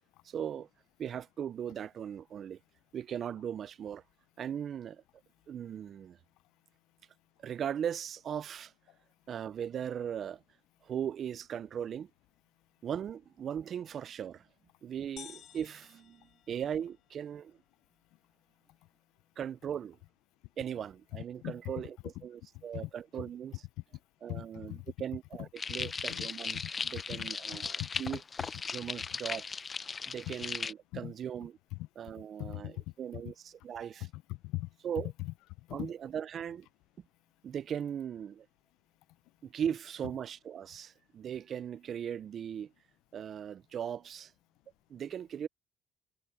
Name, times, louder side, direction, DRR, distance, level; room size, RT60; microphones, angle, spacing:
voice 1, 0.2-0.7 1.0-2.6 2.9-4.0 4.4-5.0 5.5-6.2 7.4-8.7 9.3-10.4 10.8-12.1 12.8-14.5 14.8-17.6 19.4-20.0 20.6-23.6 24.2-28.2 28.7-29.5 30.1-31.5 32.0-34.1 34.8-35.1 35.7-36.7 37.4-38.5 39.4-42.7 43.1-44.3 44.9-45.5, right 9 dB, 50° right, 0.5 m, -38 dB
sound 1, 15.2-17.1, left 10 dB, 60° left, 1.0 m, -52 dB
voice 2, 21.1-21.6 22.2-22.3 22.5-22.9 24.3-24.9 25.4-25.5 25.8-26.3 26.5-26.7 27.1-27.3 27.6-28.0 30.9-31.1 31.7-31.9 32.4-32.8 33.1-33.2 34.0-34.7 35.2-35.9, left 19 dB, 85° left, 0.4 m, -41 dB
sound 2, 25.6-30.7, left 5 dB, 30° left, 0.6 m, -37 dB
cardioid pair, 100°, 0 cm